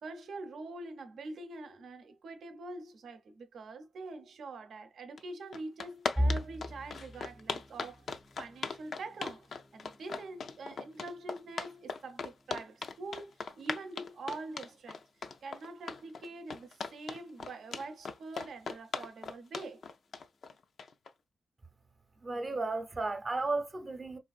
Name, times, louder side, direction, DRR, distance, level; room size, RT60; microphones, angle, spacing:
voice 1, 0.0-8.1 8.4-15.0 15.4-19.8 22.6-22.8, right 2 dB, 75° right, 0.7 m, -44 dB
sound 1, 5.2-5.3 5.5-21.1, left 5 dB, 70° left, 0.4 m, -38 dB
sound 2, 6.2-18.0 18.4-18.7 19.0-19.2 20.1-20.6, equal, 5° right, 0.5 m, -42 dB
voice 2, 22.2-24.2, right 3 dB, 40° right, 0.7 m, -34 dB
3.8 x 2.5 x 2.4 m
cardioid pair, 55°, 0 cm